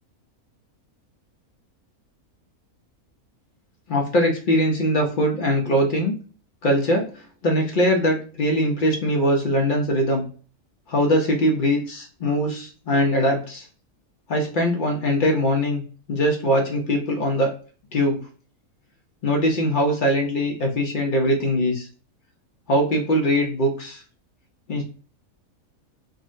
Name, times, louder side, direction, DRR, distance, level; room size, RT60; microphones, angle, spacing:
voice 1, 3.9-6.2 6.6-10.2 10.9-13.7 14.3-15.8 16.1-17.5 17.9-18.2 19.2-21.9 22.7-24.0 24.7-24.8, equal, 65° left, 1 dB, 0.5 m, -21 dB
3.6 x 2.1 x 2.5 m, 0.39 s
omnidirectional pair, 1.5 m